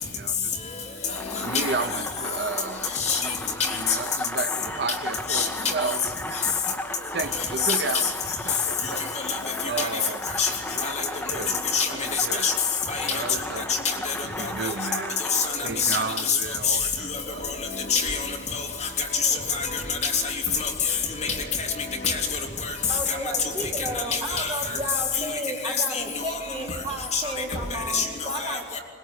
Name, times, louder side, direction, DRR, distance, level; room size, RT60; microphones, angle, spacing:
voice 1, 0.1-1.1 1.4-2.9 3.7-6.7 7.1-8.1 8.5-9.0 9.6-10.2 10.7-11.6 11.9-12.5 13.1-13.7 14.4-15.2 15.6-17.5, right 4 dB, 65° right, 0.7 m, -33 dB
sound 1, 1.1-16.3, left 1 dB, 10° left, 1.1 m, -35 dB
voice 2, 1.3-1.7 3.0-3.2 3.6-3.7 5.3-5.5 9.3-9.4 9.8-9.9 10.4-10.5 10.8-11.0 11.7-11.9 12.3-12.5 12.9-13.2 13.7-14.1 15.3-16.4 16.7-16.8 17.9-18.3 18.5-18.6 19.0-21.0 21.6-21.7 22.0-22.7 23.1-23.2 24.1-24.8 25.6-26.0 26.3-26.4 27.1-27.2 27.7-28.0 28.4-28.8, left 5 dB, 35° left, 3.4 m, -26 dB
sound 2, 16.7-25.4 26.0-27.9, equal, 85° left, 3.7 m, -42 dB
voice 3, 22.9-28.6, right 1 dB, 25° right, 3.7 m, -33 dB
21.5 x 20.5 x 9.4 m
head